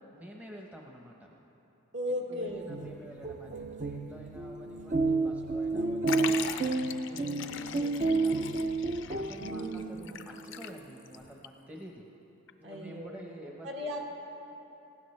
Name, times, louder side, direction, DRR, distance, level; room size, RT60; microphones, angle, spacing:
voice 1, 0.1-1.3 2.3-12.1 12.6-13.7, equal, 5° right, -1 dB, 0.8 m, -49 dB
voice 2, 1.9-2.7 5.8-6.4 9.4-10.1 12.6-13.2 13.6-14.0, left 1 dB, 55° right, 0 dB, 1.6 m, -37 dB
sound 1, 2.5-10.2, right 3 dB, 35° right, 0.4 m, -31 dB
Liquid, 6.1-11.2 11.4-11.5 12.5-12.6, left 9 dB, 55° left, 0.4 m, -40 dB
18.5 x 16.5 x 3.2 m, 3.0 s
head